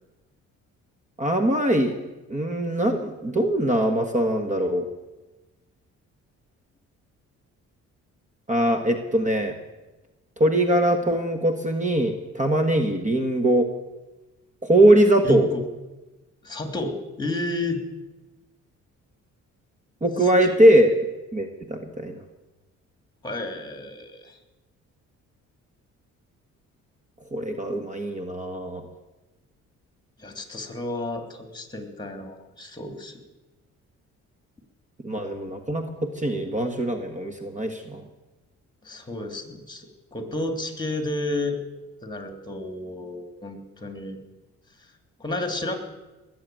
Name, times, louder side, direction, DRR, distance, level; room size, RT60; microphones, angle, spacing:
voice 1, 1.2-2.0 2.3-4.9 8.5-9.5 10.4-13.7 14.6-15.5 20.0-21.0 21.3-22.2 27.3-28.8 35.0-38.0, right 1 dB, 25° right, 5 dB, 1.6 m, -21 dB
voice 2, 15.2-15.6 16.4-17.8 20.2-20.6 23.2-24.4 30.2-33.2 38.8-41.6 42.0-44.2 45.2-45.8, left 2 dB, 15° left, 6 dB, 2.9 m, -31 dB
19.5 x 7.9 x 9.2 m, 1.1 s
cardioid pair, 90°, 30 cm